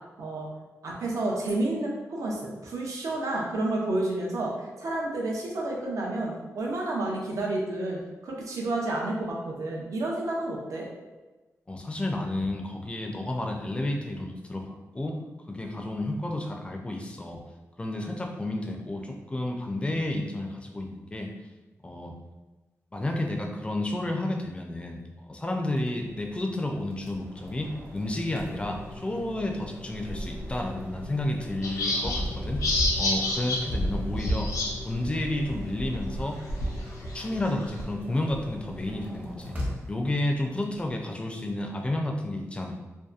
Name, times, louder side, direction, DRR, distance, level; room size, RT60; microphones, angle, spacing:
voice 1, 0.2-0.5 0.8-10.9, right 2 dB, 70° right, -2 dB, 0.6 m, -30 dB
voice 2, 11.7-15.2 15.5-17.4 17.8-21.3 21.8-22.2 22.9-25.0 25.3-34.5 34.8-36.4 37.1-39.6 39.9-42.8, left 1 dB, 20° left, 2 dB, 0.4 m, -31 dB
sound 1, 25.7-40.9, left 1 dB, 25° right, 0.7 m, -41 dB
sound 2, 31.6-34.7 35.0-35.1 35.5-37.8, left 1 dB, 80° left, 0.6 m, -28 dB
2.7 x 2.2 x 2.4 m, 1.2 s
wide cardioid pair, 90°, 6 cm